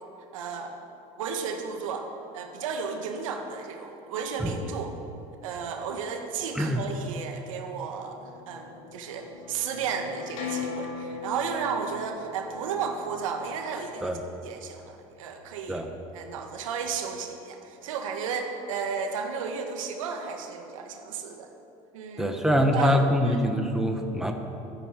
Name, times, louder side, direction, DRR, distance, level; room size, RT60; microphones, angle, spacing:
voice 1, 0.3-0.7 1.2-2.1 2.3-4.9 5.4-14.2 14.4-15.8 16.1-21.5 21.9-22.3 22.7-23.4, right 6 dB, 90° right, 4 dB, 1.6 m, -33 dB
sound 1, 8.1-13.8, left 5 dB, 90° left, 2.7 m, -39 dB
voice 2, 22.2-24.3, equal, 5° right, 3 dB, 1.7 m, -24 dB
13.0 x 10.5 x 7.7 m, 2.8 s
supercardioid pair, 85°, 17 cm